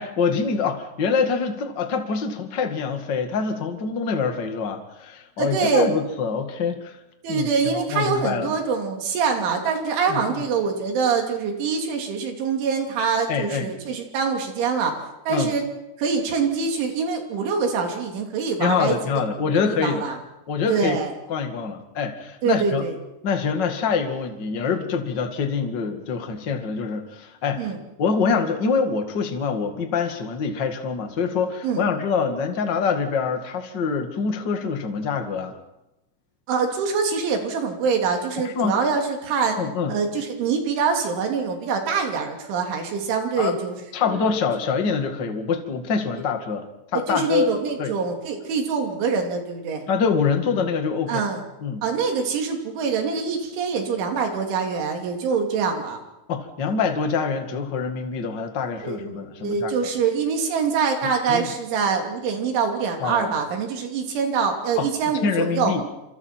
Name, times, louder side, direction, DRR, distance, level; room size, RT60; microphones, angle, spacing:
voice 1, 0.0-7.0 7.3-8.5 10.1-10.4 13.3-13.7 15.3-15.5 18.6-20.0 20.5-21.0 21.3-22.8 23.2-27.7 28.0-35.5 38.4-38.7 39.6-39.9 43.4-43.6 43.9-46.6 46.9-47.5 47.8-47.9 49.9-51.2 51.6-51.8 56.3-59.7 61.3-61.5 63.0-63.3 64.8-64.9 65.2-65.8, left 5 dB, 50° left, 5 dB, 1.3 m, -25 dB
voice 2, 5.4-5.9 7.2-14.9 15.3-15.6 16.0-19.0 19.8-20.2 20.7-21.1 22.4-23.0 27.6-27.8 31.6-31.8 36.5-39.6 39.9-43.8 44.0-44.2 46.9-49.9 51.1-51.4 51.8-56.0 58.8-65.7, right 5 dB, 80° right, 3 dB, 5.4 m, -24 dB
27.5 x 27.0 x 4.5 m, 0.93 s
omnidirectional pair, 5.4 m